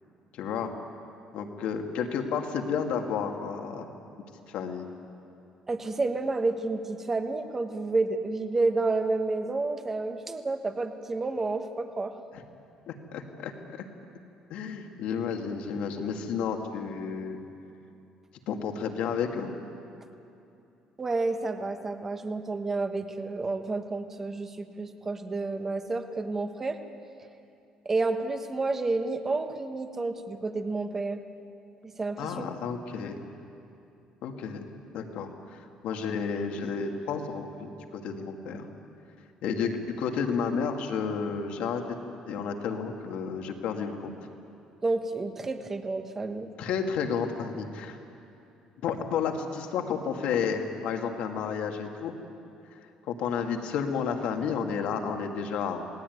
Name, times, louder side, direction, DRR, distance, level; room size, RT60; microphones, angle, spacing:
voice 1, 0.3-0.8 1.3-3.9 4.5-4.9 12.3-12.4 12.9-13.8 14.5-17.4 18.5-19.5 32.2-33.2 34.2-34.6 34.9-38.7 39.4-41.8 42.1-44.1 46.6-48.0 48.8-52.2 53.1-55.9, left 6 dB, 60° left, 4 dB, 2.3 m, -31 dB
voice 2, 5.7-12.1 21.0-26.8 27.8-31.2 32.0-32.4 44.8-46.5, right 3 dB, 15° right, 7 dB, 1.2 m, -30 dB
28.0 x 19.0 x 9.5 m, 2.7 s
cardioid pair, 180°, 2 cm